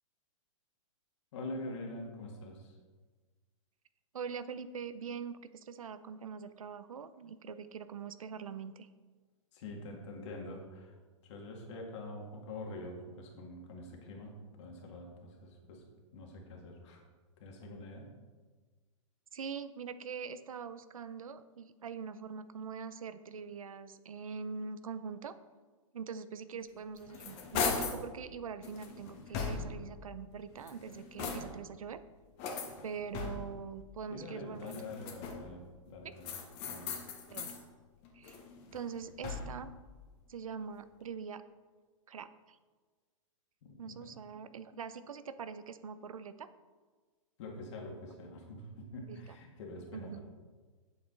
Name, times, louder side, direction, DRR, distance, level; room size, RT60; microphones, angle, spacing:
voice 1, 1.3-2.7 9.5-10.9 11.2-15.8 16.1-17.0 17.4-18.1 34.1-36.9 43.6-44.1 47.4-50.2, left 2 dB, 60° left, 0 dB, 1.9 m, -45 dB
voice 2, 4.1-8.9 19.3-25.3 25.9-32.0 32.8-34.7 36.0-36.1 37.3-37.6 38.1-38.4 38.7-39.7 40.3-41.4 42.1-42.6 43.8-46.5 49.1-49.2 49.9-50.2, right 6 dB, 90° right, 13 dB, 0.6 m, -43 dB
sound 1, 26.7-28.1 28.6-29.9 30.5-31.7 32.4-33.6 34.5-35.6 36.2-37.6 38.0-39.7, left 5 dB, 40° left, 1.4 m, -39 dB
8.6 x 7.1 x 3.9 m, 1.4 s
hypercardioid pair, 130°, 17 cm